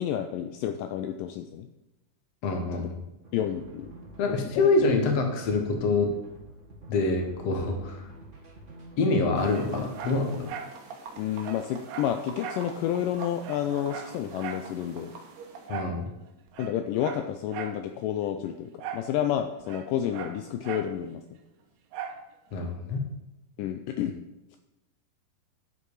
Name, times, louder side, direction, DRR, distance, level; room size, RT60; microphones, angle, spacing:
voice 1, 0.0-1.7 2.7-2.9 3.3-3.9 4.3-4.7 11.2-15.1 16.6-21.2 23.6-24.2, left 10 dB, 80° left, 6 dB, 2.2 m, -30 dB
voice 2, 2.4-3.0 4.2-6.1 6.9-8.1 9.0-10.5 15.7-16.1 22.5-23.0, left 3 dB, 55° left, 4 dB, 2.2 m, -26 dB
sound 1, 3.2-10.4, right 2 dB, 30° right, 1.5 m, -48 dB
sound 2, 9.4-15.7, right 4 dB, 60° right, 2.3 m, -45 dB
Dog, 9.5-10.8 11.1-11.2 11.4-12.7 13.0-13.1 13.4-14.7 15.7-16.0 16.5-17.8 18.8-19.1 19.4-20.9 21.9-22.2 22.7-22.8, right 7 dB, 80° right, 2.5 m, -39 dB
9.8 x 8.0 x 4.9 m, 0.96 s
omnidirectional pair, 4.0 m